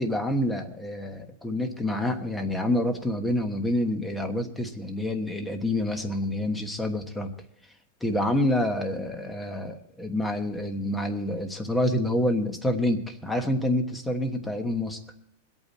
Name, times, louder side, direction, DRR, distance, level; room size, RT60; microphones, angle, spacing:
voice 1, 0.0-7.3 8.0-15.0, left 1 dB, 5° left, 5 dB, 1.3 m, -27 dB
22.5 x 8.8 x 4.2 m, 0.76 s
supercardioid pair, 170°, 0 cm